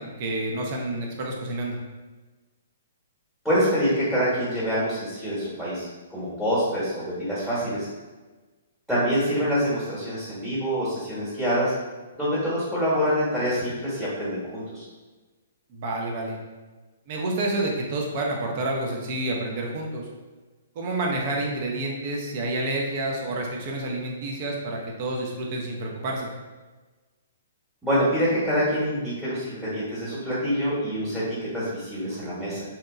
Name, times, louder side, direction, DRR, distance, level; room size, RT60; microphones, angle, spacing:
voice 1, 0.0-1.8 15.7-16.4 17.1-20.1 20.8-26.3, right 2 dB, 45° right, 0 dB, 0.5 m, -29 dB
voice 2, 3.4-7.9 8.9-11.7 12.2-14.8 27.8-32.6, equal, 5° right, -11 dB, 1.0 m, -26 dB
2.8 x 2.1 x 2.3 m, 1.3 s
figure-of-eight pair, 120°, 0 cm